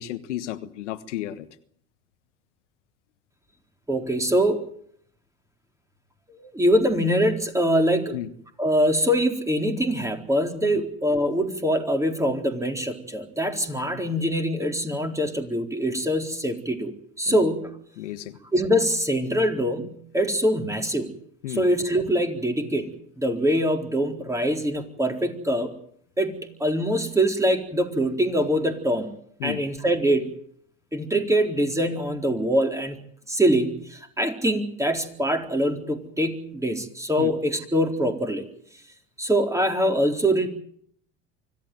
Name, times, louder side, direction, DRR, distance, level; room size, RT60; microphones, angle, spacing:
voice 1, 0.0-1.5 8.1-8.3 10.7-10.8 17.3-17.4 18.0-18.4 21.4-21.6 29.4-29.6 37.2-37.3, left 13 dB, 80° left, 11 dB, 1.4 m, -33 dB
voice 2, 3.9-4.6 6.3-8.2 8.6-16.9 17.2-17.7 18.5-21.1 21.5-25.7 26.2-29.1 29.4-30.3 30.9-33.0 33.3-38.5 39.2-40.5, equal, 10° right, 4 dB, 4.2 m, -24 dB
25.0 x 15.5 x 9.3 m, 0.65 s
hypercardioid pair, 75°, 35 cm